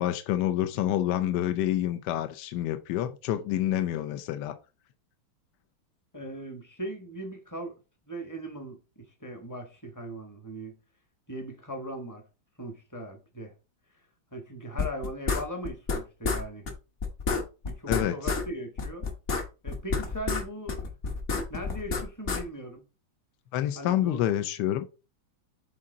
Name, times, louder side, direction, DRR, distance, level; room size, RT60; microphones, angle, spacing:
voice 1, 0.0-4.5 17.9-18.3 23.5-24.9, left 12 dB, 70° left, 1.0 m, -28 dB
voice 2, 6.1-7.7 8.1-10.7 11.3-12.2 12.6-13.5 14.3-16.7 17.6-19.1 19.6-20.9 21.5-22.8 23.8-24.3, right 1 dB, 15° left, 0.7 m, -39 dB
sound 1, 14.8-16.4 16.7-16.8 17.0-18.4 18.8-20.4 20.7-22.4, left 4 dB, 45° left, 1.1 m, -29 dB
7.6 x 3.8 x 3.8 m
omnidirectional pair, 2.2 m